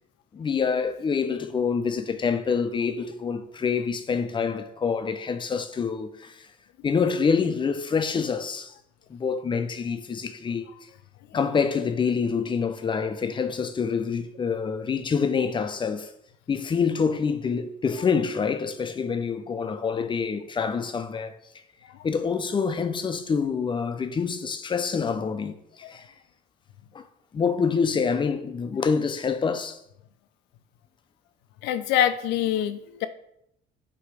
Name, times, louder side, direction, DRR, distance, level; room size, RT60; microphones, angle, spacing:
voice 1, 0.3-6.5 6.8-8.7 9.1-10.7 11.3-16.1 16.5-21.4 22.0-26.1 26.9-27.0 27.3-29.8, left 5 dB, 30° left, 0.6 m, -26 dB
voice 2, 31.6-33.1, left 10 dB, 90° left, 0.5 m, -25 dB
8.1 x 3.0 x 4.8 m
cardioid pair, 110°, 17 cm